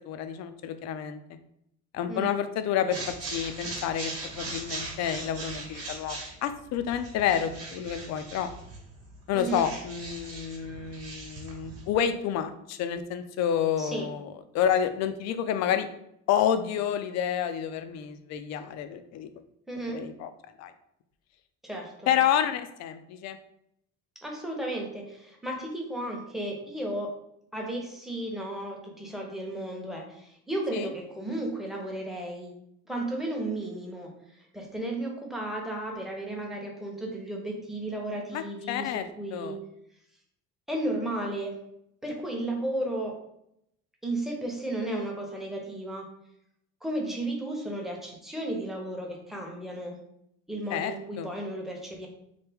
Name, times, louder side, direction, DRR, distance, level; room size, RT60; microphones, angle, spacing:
voice 1, 0.1-1.2 1.9-8.5 9.3-14.3 14.5-15.9 16.3-19.3 19.9-20.3 20.6-20.7 22.1-23.4 30.7-30.9 38.3-39.6 50.7-51.3, left 9 dB, 55° left, 9 dB, 0.4 m, -29 dB
voice 2, 2.1-2.4 9.3-9.7 13.8-14.1 19.7-20.1 21.6-22.1 24.2-27.1 27.5-32.6 32.9-38.9 39.2-39.6 40.7-41.6 42.0-43.2 44.0-46.1 46.8-49.9 50.5-52.1, right 1 dB, ahead, 0 dB, 0.8 m, -34 dB
sound 1, 2.9-11.9, right 2 dB, 45° right, 1.0 m, -40 dB
3.3 x 2.1 x 3.4 m, 0.76 s
supercardioid pair, 95°, 33 cm